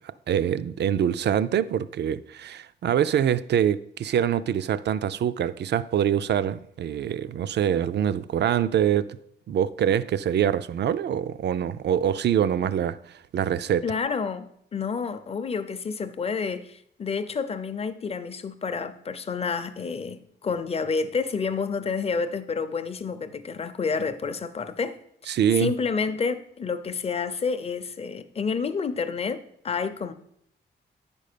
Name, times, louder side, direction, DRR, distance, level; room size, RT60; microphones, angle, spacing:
voice 1, 0.3-9.2 9.5-13.8 25.3-25.7, right 9 dB, 65° right, 0.4 m, -24 dB
voice 2, 13.8-25.0 25.5-30.1, left 5 dB, 30° left, 0.5 m, -29 dB
9.7 x 5.3 x 6.7 m
wide cardioid pair, 175°, 19 cm